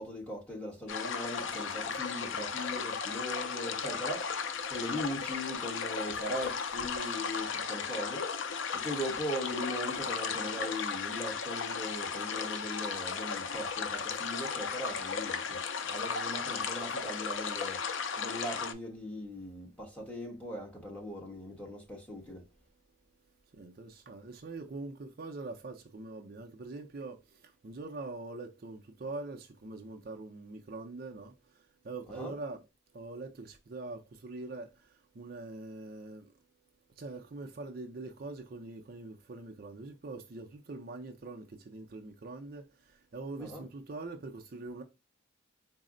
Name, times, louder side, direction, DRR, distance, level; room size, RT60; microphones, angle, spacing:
voice 1, 0.0-4.3 4.7-8.2 8.7-15.6 15.9-17.8 18.2-22.4 32.2-32.3 43.4-43.6, equal, 5° left, 1.1 m, -39 dB
sound 1, 0.9-18.7, left 6 dB, 70° left, 0.4 m, -35 dB
voice 2, 23.5-32.6 32.9-36.3 37.0-44.8, right 3 dB, 45° right, 0.5 m, -43 dB
4.1 x 2.0 x 3.7 m
head